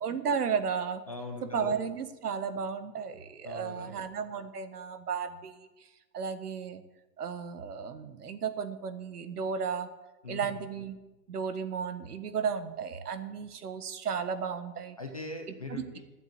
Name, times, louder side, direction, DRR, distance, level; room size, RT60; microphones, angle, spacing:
voice 1, 0.0-1.0 1.5-5.7 6.1-6.8 7.2-9.9 10.3-11.0 11.3-15.0 15.5-16.0, right 6 dB, 65° right, 10 dB, 1.5 m, -34 dB
voice 2, 1.1-1.7 3.4-3.9 10.2-10.5 15.0-16.0, left 2 dB, 20° left, 4 dB, 0.6 m, -40 dB
11.5 x 8.0 x 8.8 m, 1.1 s
hypercardioid pair, 175°, 50 cm